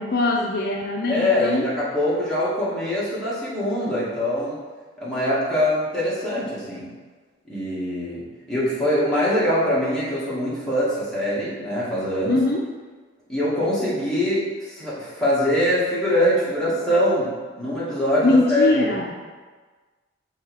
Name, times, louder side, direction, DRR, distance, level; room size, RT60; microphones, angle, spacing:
voice 1, 0.0-1.7 12.3-12.6 18.2-19.1, left 2 dB, 55° left, 0 dB, 0.5 m, -21 dB
voice 2, 1.1-4.6 5.0-6.9 7.5-8.2 8.5-12.4 13.3-18.8, left 1 dB, 5° left, -10 dB, 1.9 m, -23 dB
6.3 x 3.3 x 4.7 m, 1.4 s
head